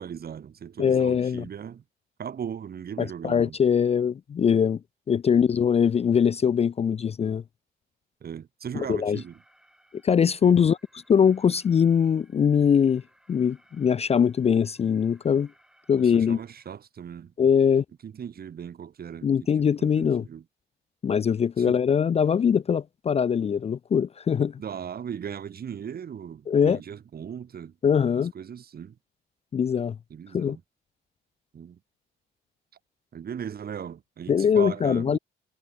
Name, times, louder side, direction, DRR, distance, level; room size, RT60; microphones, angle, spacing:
voice 1, 0.0-1.8 2.2-3.6 8.2-9.4 10.4-10.7 16.0-17.3 18.0-19.3 19.6-20.4 21.6-21.8 24.6-27.7 28.2-29.0 30.1-30.6 31.5-31.8 33.1-35.2, right 8 dB, 50° right, 1.9 m, -38 dB
voice 2, 0.8-1.5 3.0-4.8 5.1-7.4 8.7-9.2 10.0-10.8 11.1-13.0 13.3-15.5 15.9-16.4 17.4-17.8 19.2-20.2 21.0-24.6 26.5-26.8 27.8-28.3 29.5-30.0 30.3-30.6 34.3-35.2, left 7 dB, 30° left, 0.4 m, -22 dB
Alarm, 9.1-16.7, equal, 5° right, 5.6 m, -63 dB
cardioid pair, 90°, 20 cm